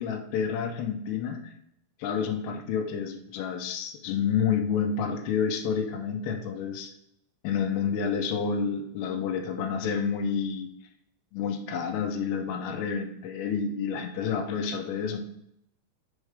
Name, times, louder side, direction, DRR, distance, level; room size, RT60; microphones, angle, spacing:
voice 1, 0.0-1.5 2.0-6.9 7.4-10.7 11.3-15.2, left 6 dB, 85° left, 6 dB, 2.7 m, -29 dB
6.4 x 3.5 x 4.7 m, 0.76 s
omnidirectional pair, 4.9 m